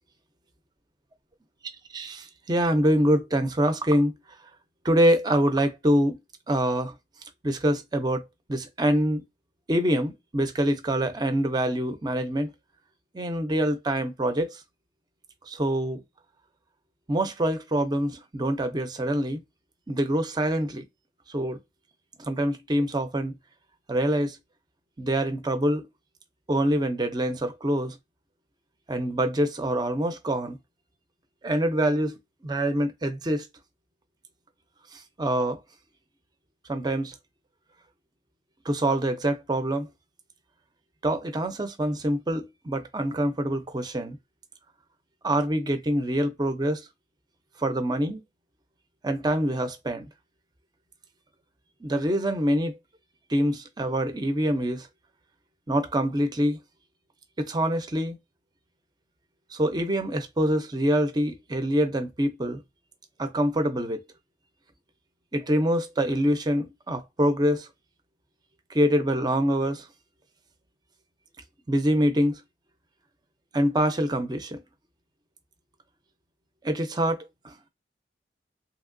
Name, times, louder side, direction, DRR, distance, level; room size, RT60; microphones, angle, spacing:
voice 1, 1.9-4.1 4.8-6.2 6.5-6.9 7.4-9.2 9.7-12.5 13.1-14.6 15.5-16.0 17.1-19.4 19.9-20.8 21.3-21.6 22.2-23.4 23.9-24.4 25.0-25.9 26.5-28.0 28.9-30.6 31.4-32.2 32.4-33.5 34.9-35.6 36.7-37.1 38.6-39.9 41.0-44.2 45.2-46.8 47.6-48.2 49.0-50.1 51.8-52.8 53.3-54.9 55.7-56.6 57.4-58.2 59.5-62.6 63.2-64.0 65.3-67.7 68.7-69.9 71.7-72.4 73.5-74.6 76.6-77.5, equal, 25° right, 0.5 m, -25 dB
2.9 x 2.7 x 2.5 m
head